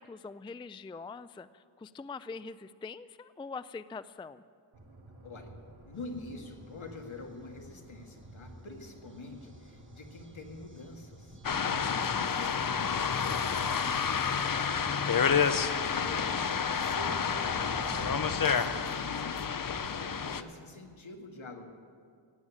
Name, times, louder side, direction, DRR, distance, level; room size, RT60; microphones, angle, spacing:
voice 1, 0.0-4.4, left 4 dB, 10° left, 15 dB, 0.3 m, -44 dB
sound 1, 4.7-18.5, right 1 dB, 70° right, 2.4 m, -52 dB
voice 2, 5.8-11.4 11.6-21.7, left 2 dB, 70° left, 3 dB, 2.0 m, -47 dB
sound 2, 5.9-19.9, right 2 dB, 25° right, 1.2 m, -51 dB
sound 3, 11.4-20.4, left 6 dB, 45° left, 0.7 m, -29 dB
16.5 x 8.9 x 8.8 m, 2.1 s
wide cardioid pair, 60°, 49 cm